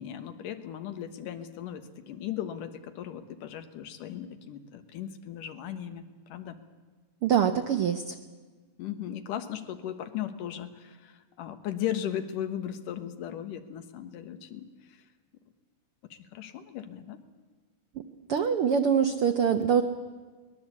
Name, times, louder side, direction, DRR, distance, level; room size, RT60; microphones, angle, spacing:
voice 1, 0.0-6.6 8.8-15.0 16.1-17.2, left 10 dB, 80° left, 10 dB, 2.9 m, -37 dB
voice 2, 7.2-8.2 18.3-19.8, right 7 dB, 70° right, 7 dB, 1.3 m, -24 dB
23.0 x 20.0 x 8.4 m, 1.4 s
omnidirectional pair, 3.8 m